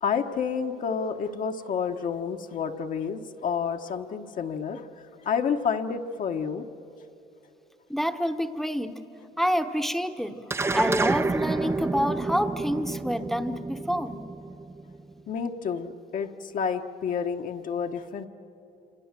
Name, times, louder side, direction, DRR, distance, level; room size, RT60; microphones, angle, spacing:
voice 1, 0.0-6.6 15.3-18.3, left 6 dB, 50° left, 5 dB, 1.3 m, -30 dB
voice 2, 7.9-9.0 9.4-10.4 10.7-14.2, equal, ahead, 8 dB, 1.1 m, -27 dB
sound 1, 10.5-15.1, right 3 dB, 15° right, 0.6 m, -29 dB
27.5 x 26.5 x 7.5 m, 2.9 s
cardioid pair, 110°, 17 cm